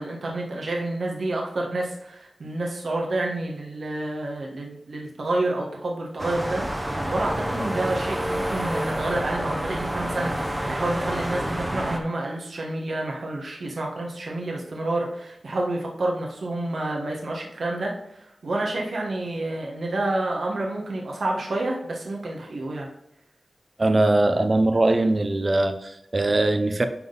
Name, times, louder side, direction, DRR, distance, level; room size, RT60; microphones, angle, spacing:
voice 1, 0.0-22.9, right 2 dB, 75° right, -1 dB, 1.4 m, -29 dB
sound 1, 6.2-12.0, right 1 dB, 15° right, 1.1 m, -28 dB
voice 2, 23.8-26.9, right 2 dB, 40° right, 8 dB, 0.7 m, -21 dB
10.5 x 3.8 x 4.0 m, 0.84 s
wide cardioid pair, 85°, 0 cm